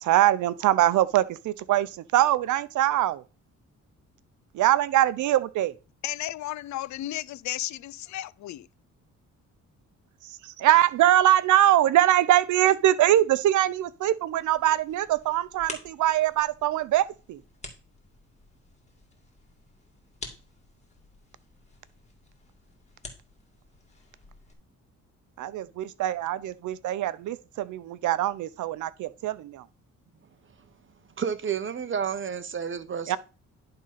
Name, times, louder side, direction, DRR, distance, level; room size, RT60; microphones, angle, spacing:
voice 1, 0.0-3.2 4.5-5.7 10.6-17.4 25.4-29.6 33.1-33.2, right 13 dB, 75° right, 0.7 m, -23 dB
voice 2, 6.0-8.7, left 14 dB, 70° left, 0.5 m, -34 dB
sound 1, 14.4-24.5, left 3 dB, 20° left, 2.6 m, -48 dB
voice 3, 31.2-33.2, right 7 dB, 40° right, 0.9 m, -30 dB
11.0 x 3.8 x 5.8 m
cardioid pair, 90°, 30 cm